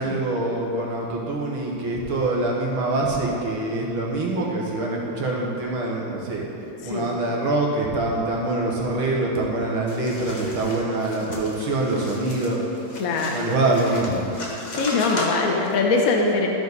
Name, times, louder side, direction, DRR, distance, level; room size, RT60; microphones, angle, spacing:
voice 1, 0.0-6.5 6.8-12.6 13.3-14.2, right 2 dB, 75° right, -2 dB, 2.0 m, -25 dB
sound 1, 9.9-15.8, left 1 dB, 35° left, 0.7 m, -36 dB
voice 2, 13.0-13.4 14.8-16.5, left 3 dB, 55° left, 0 dB, 1.0 m, -22 dB
13.5 x 5.0 x 4.0 m, 2.8 s
omnidirectional pair, 2.3 m